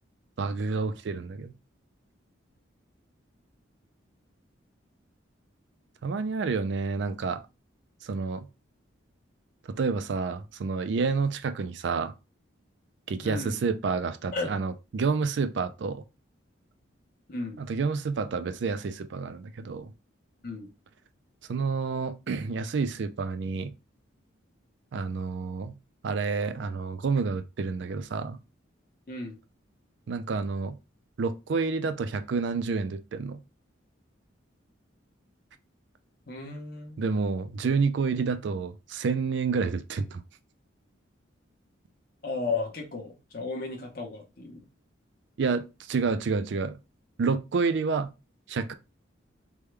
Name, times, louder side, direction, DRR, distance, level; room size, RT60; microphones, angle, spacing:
voice 1, 0.4-1.5 6.0-7.4 8.0-8.5 9.7-12.1 13.1-16.0 17.6-19.9 21.5-23.7 24.9-25.8 26.0-28.4 30.1-30.8 31.2-33.4 37.0-40.2 45.4-46.8 47.2-48.1 48.5-48.7, right 4 dB, 65° right, 0.4 m, -29 dB
voice 2, 13.2-13.6 14.3-14.6 17.3-17.6 20.4-20.7 29.1-29.4 36.3-37.0 42.2-44.6, left 3 dB, 45° left, 0.8 m, -34 dB
3.5 x 2.2 x 3.2 m
head